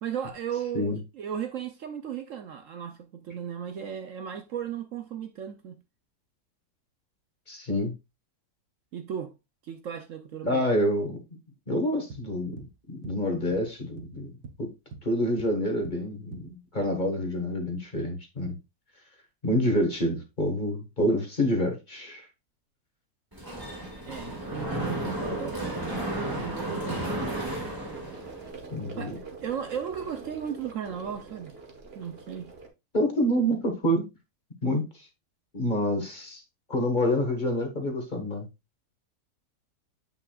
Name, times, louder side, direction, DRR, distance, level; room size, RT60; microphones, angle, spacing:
voice 1, 0.0-5.8 8.9-9.3 9.6-10.6 24.0-26.1 26.4-27.1 29.0-31.6 31.9-32.5, right 8 dB, 60° right, 1.0 m, -36 dB
voice 2, 7.5-7.9 10.4-11.2 11.7-14.3 14.6-14.7 15.0-18.5 19.4-22.2 28.7-29.2 32.9-34.1 34.6-35.1 35.5-36.4 36.7-38.5, equal, 30° left, 1.6 m, -27 dB
sound 1, 12.1-12.8 13.0-13.3 13.5-14.6 14.9-16.1 16.3-16.8, right 4 dB, 80° right, 1.4 m, -44 dB
Mechanisms, 23.3-28.5, right 1 dB, 15° right, 1.8 m, -33 dB
sound 2, 27.6-32.7, right 4 dB, 40° right, 1.5 m, -45 dB
8.3 x 5.7 x 2.4 m
omnidirectional pair, 1.6 m